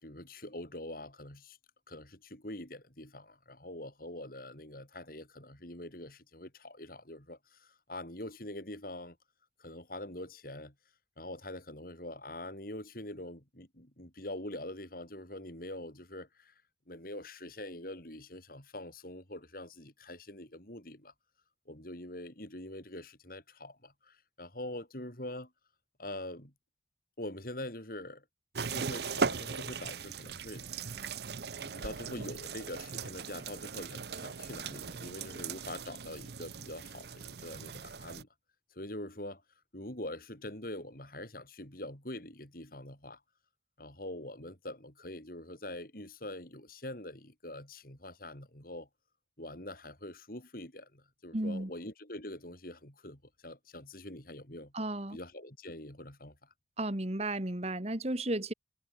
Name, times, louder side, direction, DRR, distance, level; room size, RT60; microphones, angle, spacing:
voice 1, 0.0-1.6 1.9-9.2 9.6-10.7 11.2-16.5 16.9-21.1 21.7-25.5 26.0-26.5 27.2-28.2 28.7-31.0 31.6-38.3 38.7-39.4 39.7-43.2 43.8-48.9 49.4-54.7 55.1-56.4, left 1 dB, 50° left, 6.6 m, -44 dB
sound 1, 28.5-38.2, right 5 dB, 65° right, 0.8 m, -39 dB
voice 2, 51.3-51.7 54.7-55.2 56.8-58.5, right 1 dB, 35° right, 1.9 m, -33 dB
head